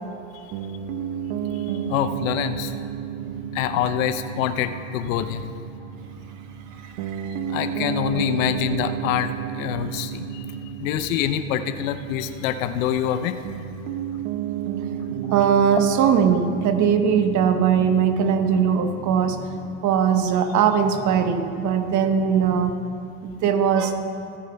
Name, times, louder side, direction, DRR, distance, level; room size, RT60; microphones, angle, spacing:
Piano, 0.5-19.9, right 8 dB, 65° right, 0.8 m, -32 dB
voice 1, 1.9-2.7 3.5-5.5 7.5-10.5 10.8-13.4, left 10 dB, 75° left, 11 dB, 0.7 m, -25 dB
voice 2, 6.8-7.6 15.3-22.7 23.2-23.9, right 7 dB, 45° right, 7 dB, 1.1 m, -20 dB
26.0 x 9.3 x 2.3 m, 2.6 s
supercardioid pair, 100°, 40 cm